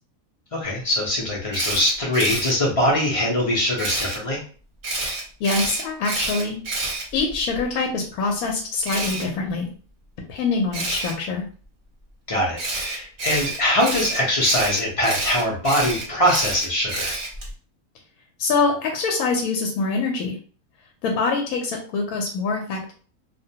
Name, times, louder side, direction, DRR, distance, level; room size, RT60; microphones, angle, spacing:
voice 1, 0.5-4.4 12.3-17.2, left 1 dB, 40° left, -3 dB, 0.5 m, -22 dB
Camera, 1.5-2.5 3.8-4.2 4.8-7.6 8.8-9.2 10.7-11.1 12.6-17.5, right 2 dB, 40° right, 0.9 m, -28 dB
voice 2, 5.4-6.6 7.1-9.7 10.2-11.4 18.4-20.4 21.0-22.9, left 4 dB, 80° left, 2 dB, 1.0 m, -24 dB
2.5 x 2.2 x 2.7 m, 0.41 s
omnidirectional pair, 1.5 m